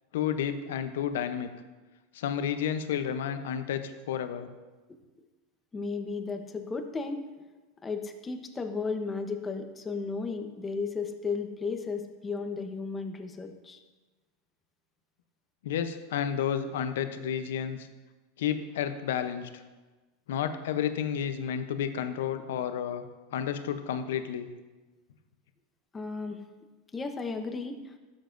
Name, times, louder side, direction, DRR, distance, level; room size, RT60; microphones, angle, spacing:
voice 1, 0.1-1.5 2.1-4.5 15.6-17.9 18.4-19.6 20.3-23.0 23.3-24.5, left 8 dB, 80° left, 9 dB, 0.7 m, -31 dB
voice 2, 5.7-7.2 7.8-13.8 25.9-26.4 26.9-27.9, left 4 dB, 20° left, 6 dB, 0.8 m, -34 dB
12.5 x 7.2 x 2.6 m, 1.2 s
supercardioid pair, 120°, 0 cm